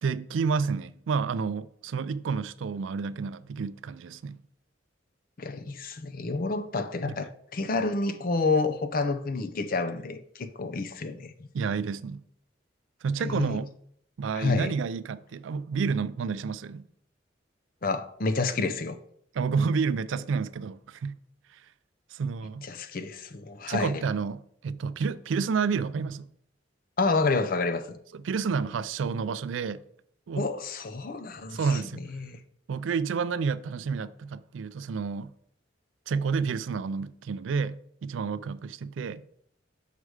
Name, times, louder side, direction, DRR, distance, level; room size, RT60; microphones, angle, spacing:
voice 1, 0.0-4.4 7.1-7.2 11.5-12.2 13.0-13.7 14.2-16.9 19.3-21.2 22.1-22.7 23.7-26.3 28.2-29.8 30.3-30.5 31.5-32.0 32.7-35.3 36.1-39.2, right 5 dB, 85° right, 0.4 m, -30 dB
voice 2, 5.4-11.5 13.2-13.6 14.3-14.7 17.8-19.0 22.6-24.0 27.0-28.0 30.4-31.8 32.1-32.4, left 3 dB, 50° left, 0.6 m, -29 dB
6.5 x 4.7 x 4.9 m
head